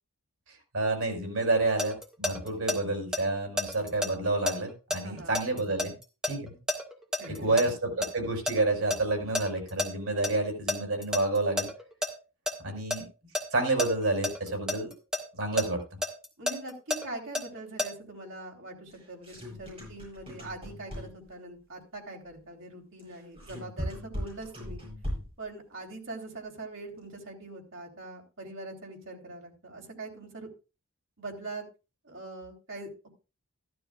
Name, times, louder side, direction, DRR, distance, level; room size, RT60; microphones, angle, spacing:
voice 1, 0.7-6.0 6.3-6.6 7.4-11.7 12.6-13.0 13.5-14.9 15.4-15.8, right 2 dB, 80° right, 3 dB, 5.5 m, -29 dB
sound 1, 1.4-2.8 3.1-7.7 8.0-9.9 10.2-10.3 10.7-12.1 12.5-13.0 13.4-15.2 15.6-17.9, left 1 dB, 5° right, 1.9 m, -30 dB
voice 2, 5.0-5.5 7.2-7.7 16.4-24.8 25.4-30.5 31.2-31.6 32.0-33.1, right 2 dB, 65° right, 1 dB, 3.8 m, -42 dB
sound 2, 18.9-21.3 23.0-25.5, equal, 25° right, 7.9 m, -39 dB
14.0 x 12.5 x 2.4 m, 0.31 s
head